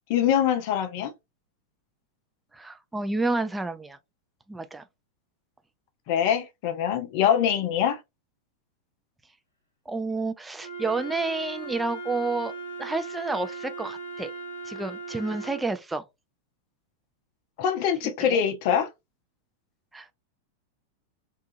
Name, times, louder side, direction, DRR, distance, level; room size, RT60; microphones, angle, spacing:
voice 1, 0.1-1.1 6.1-8.0 17.6-18.9, left 9 dB, 45° left, 0.5 m, -24 dB
voice 2, 2.5-4.0 4.5-4.8 9.9-12.5 12.8-14.3 14.6-16.0 18.2-18.4 19.9-20.1, right 3 dB, 10° right, 0.4 m, -30 dB
Wind instrument woodwind instrument, 10.6-15.7, right 3 dB, 85° right, 0.9 m, -38 dB
2.7 x 2.3 x 2.5 m
figure-of-eight pair, 90°, 0 cm